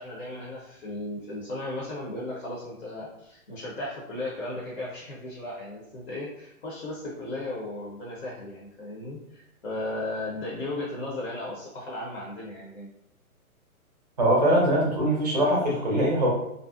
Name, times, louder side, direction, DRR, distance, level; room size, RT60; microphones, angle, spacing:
voice 1, 0.0-12.9, left 1 dB, 50° left, -5 dB, 0.7 m, -36 dB
voice 2, 14.2-16.3, right 1 dB, 30° right, -4 dB, 0.5 m, -22 dB
2.5 x 2.0 x 2.4 m, 0.77 s
hypercardioid pair, 170°, 44 cm